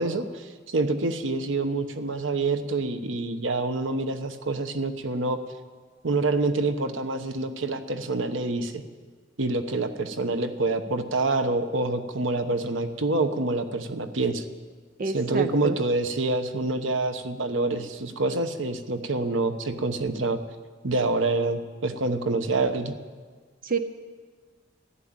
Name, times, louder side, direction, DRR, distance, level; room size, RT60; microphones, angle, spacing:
voice 1, 0.0-5.4 6.0-8.8 9.4-14.4 15.1-20.4 20.8-22.9, right 2 dB, 90° right, 8 dB, 1.0 m, -27 dB
voice 2, 15.0-15.8 23.6-23.8, right 4 dB, 50° right, 9 dB, 0.7 m, -28 dB
14.0 x 11.5 x 8.9 m, 1.5 s
head